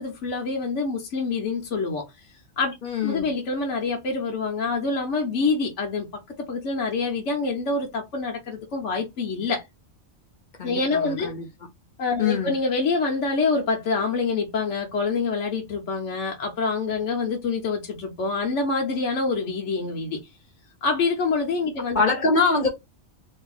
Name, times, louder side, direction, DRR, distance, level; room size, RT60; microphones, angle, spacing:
voice 1, 0.0-2.1 2.6-2.7 3.0-9.6 10.6-11.3 12.0-20.2 20.8-22.0, left 4 dB, 65° left, 1.1 m, -26 dB
voice 2, 2.8-3.3 10.6-11.5 12.2-12.5 21.9-22.7, left 4 dB, 45° left, 0.8 m, -23 dB
2.8 x 2.6 x 3.8 m
omnidirectional pair, 1.4 m